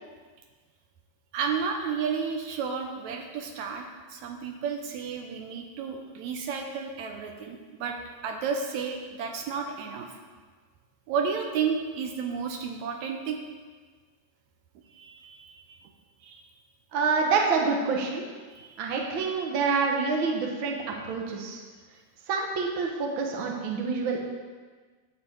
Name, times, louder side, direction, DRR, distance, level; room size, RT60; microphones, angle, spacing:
voice 1, 1.3-8.0 8.2-10.1 11.1-13.4 14.9-15.9 16.2-16.4 18.5-18.9, right 6 dB, 80° right, 3 dB, 2.2 m, -32 dB
voice 2, 16.9-18.2 18.8-20.8 21.1-21.6 22.3-24.2, right 4 dB, 50° right, 0 dB, 1.8 m, -27 dB
12.0 x 4.8 x 8.2 m, 1.5 s
omnidirectional pair, 3.3 m